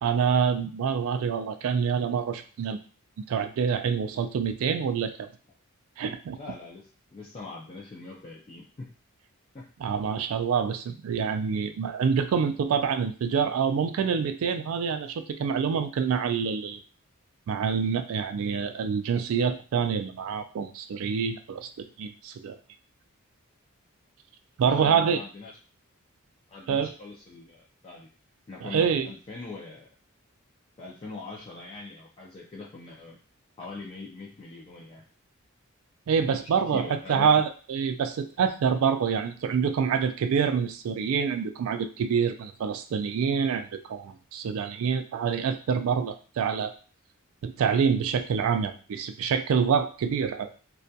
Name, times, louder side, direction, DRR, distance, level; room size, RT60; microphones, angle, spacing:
voice 1, 0.0-2.8 3.3-5.3 6.0-6.4 9.8-16.8 17.5-22.6 24.6-25.2 26.7-26.9 28.6-29.1 36.1-46.7 47.4-50.5, right 6 dB, 65° right, 9 dB, 0.3 m, -26 dB
voice 2, 6.3-8.9 9.5-10.1 24.6-25.6 26.5-28.1 28.5-29.9 30.8-33.2 33.6-35.0 36.3-36.4 36.7-37.3, left 3 dB, 25° left, -4 dB, 0.3 m, -42 dB
2.2 x 2.2 x 2.6 m, 0.39 s
head